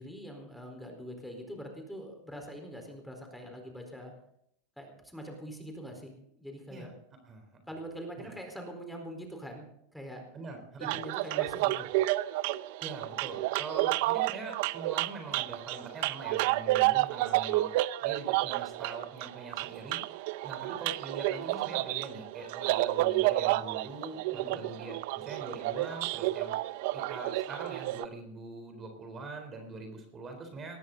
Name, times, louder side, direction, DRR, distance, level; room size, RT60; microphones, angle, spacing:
voice 1, 0.0-4.1 4.8-6.9 7.7-9.6 9.9-10.2 10.8-11.9 24.3-24.6, equal, ahead, 3 dB, 4.3 m, -43 dB
voice 2, 7.2-7.6 8.2-8.3 10.3-10.9 12.8-17.7 18.0-20.0 20.4-26.5 26.9-30.8, right 3 dB, 30° right, 5 dB, 3.9 m, -43 dB
sound 1, 10.8-28.1, right 17 dB, 65° right, 0.6 m, -30 dB
19.5 x 13.5 x 4.0 m, 0.73 s
hypercardioid pair, 110°, 0 cm